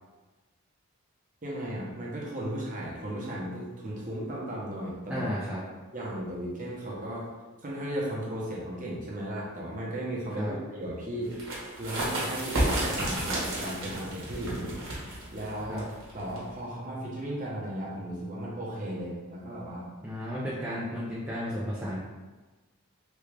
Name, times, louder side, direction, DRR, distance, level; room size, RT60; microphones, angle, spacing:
voice 1, 1.4-5.3 5.9-7.2 7.6-11.5 11.8-14.7 15.3-15.8 16.1-19.8, right 1 dB, 35° right, -4 dB, 0.7 m, -35 dB
voice 2, 5.1-5.6 10.3-10.5 15.7-15.9 20.0-22.0, equal, 5° right, -8 dB, 0.3 m, -33 dB
sound 1, 11.3-16.6, right 1 dB, 60° right, 1.0 m, -32 dB
3.4 x 2.3 x 3.3 m, 1.3 s
head